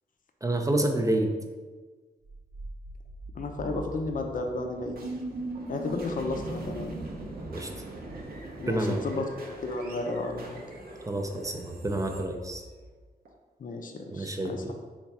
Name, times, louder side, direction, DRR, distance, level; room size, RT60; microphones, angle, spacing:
voice 1, 0.4-1.3 7.5-7.7 8.7-9.2 11.1-12.6 14.1-14.7, right 1 dB, 20° right, 3 dB, 0.5 m, -28 dB
sound 1, 2.2-13.3, right 2 dB, 60° right, 0.7 m, -40 dB
voice 2, 3.3-5.0 5.7-7.0 8.6-10.6 13.6-14.7, left 2 dB, 55° left, 4 dB, 0.5 m, -33 dB
3.4 x 2.3 x 4.1 m, 1.4 s
cardioid pair, 65°, 17 cm